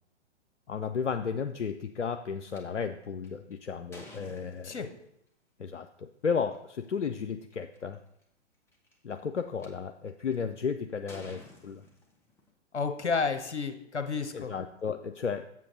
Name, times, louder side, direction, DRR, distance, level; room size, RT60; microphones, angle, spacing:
voice 1, 0.7-4.8 5.6-8.0 9.0-11.8 14.3-15.6, left 6 dB, 90° left, 7 dB, 0.5 m, -34 dB
sound 1, 2.5-2.6 3.2-5.1 6.4-6.5 7.2-7.3 7.5-7.9 8.7-9.7 10.3-10.6 11.1-12.5, left 2 dB, 5° left, 0.9 m, -51 dB
voice 2, 12.7-14.5, left 5 dB, 70° left, 7 dB, 1.1 m, -31 dB
7.5 x 7.4 x 3.8 m, 0.77 s
figure-of-eight pair, 115°, 35 cm